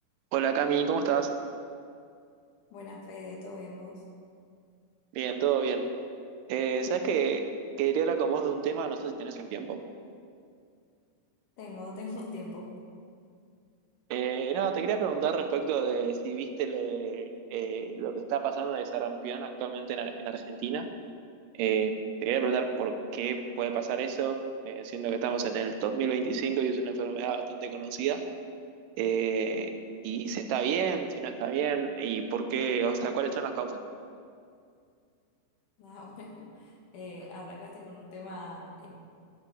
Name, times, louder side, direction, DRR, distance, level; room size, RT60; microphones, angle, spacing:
voice 1, 0.3-1.3 5.1-5.9 6.5-7.5 7.8-9.8 14.1-20.9 21.6-22.0 22.2-24.4 24.7-28.2 29.0-33.7, right 7 dB, 85° right, 7 dB, 2.4 m, -30 dB
voice 2, 2.7-4.0 11.6-12.7 35.8-38.9, left 2 dB, 70° left, -2 dB, 3.3 m, -42 dB
12.0 x 10.5 x 4.9 m, 2.3 s
omnidirectional pair, 3.7 m